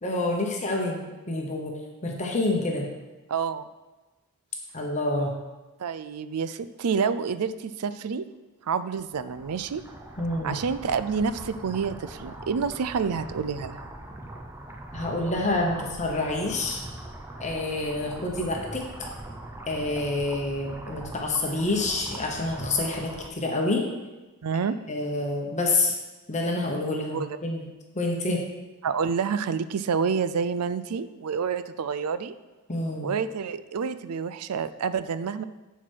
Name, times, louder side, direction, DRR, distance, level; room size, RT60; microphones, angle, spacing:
voice 1, 0.0-1.7 2.0-2.9 4.7-5.3 10.2-10.6 14.9-16.8 17.4-19.1 19.7-23.8 24.9-25.9 26.3-27.6 27.9-28.4 32.7-33.1, left 2 dB, 35° left, 0 dB, 1.0 m, -27 dB
voice 2, 3.3-3.7 5.8-8.2 8.7-9.8 10.4-13.8 24.4-24.8 27.1-27.4 28.8-32.3 33.0-35.4, right 6 dB, 90° right, 13 dB, 0.4 m, -28 dB
sound 1, 9.1-23.3, right 1 dB, 10° right, 0.6 m, -41 dB
11.0 x 4.6 x 4.6 m, 1.2 s
head